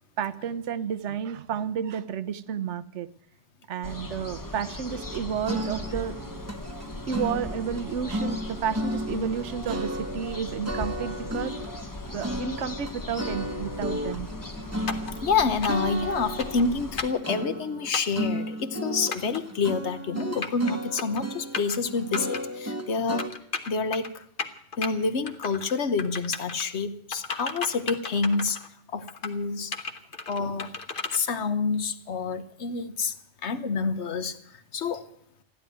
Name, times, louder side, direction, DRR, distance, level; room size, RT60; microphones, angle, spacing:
voice 1, 0.2-3.1 3.7-6.3 7.1-11.5 12.1-14.3, right 7 dB, 70° right, 15 dB, 1.1 m, -31 dB
sound 1, 3.8-17.1, left 1 dB, 15° left, 0.9 m, -38 dB
sound 2, 4.9-7.8 8.1-10.4 10.6-23.3, equal, 15° right, 1.0 m, -34 dB
sound 3, 14.9-15.1 15.6-15.9 16.4-16.6 17.0-17.2 17.9-18.2 19.1-19.4 20.2-20.7 21.0-21.2 21.5-21.8 22.1-22.4 23.2-24.1 24.4-24.9 25.3-25.7 26.0-26.6 27.1-28.7 29.1-29.3 29.7-31.2, left 4 dB, 45° left, 1.3 m, -34 dB
voice 2, 15.2-23.3 23.7-24.2 24.8-28.6 28.9-29.7 30.3-30.8 31.1-33.1 33.4-34.4 34.7-35.1, left 4 dB, 65° left, 12 dB, 1.3 m, -28 dB
14.5 x 11.0 x 9.2 m, 0.68 s
omnidirectional pair, 1.3 m